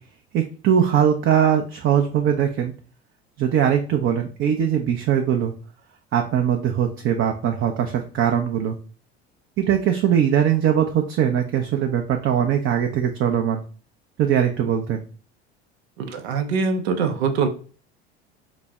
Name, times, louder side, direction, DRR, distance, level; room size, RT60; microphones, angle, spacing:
voice 1, 0.3-2.7 3.4-5.5 6.1-8.8 9.6-13.6 14.2-15.0, right 9 dB, 40° right, 3 dB, 0.5 m, -21 dB
voice 2, 16.0-17.5, right 5 dB, 80° right, 8 dB, 0.6 m, -23 dB
4.0 x 2.0 x 3.4 m, 0.39 s
hypercardioid pair, 70°, 31 cm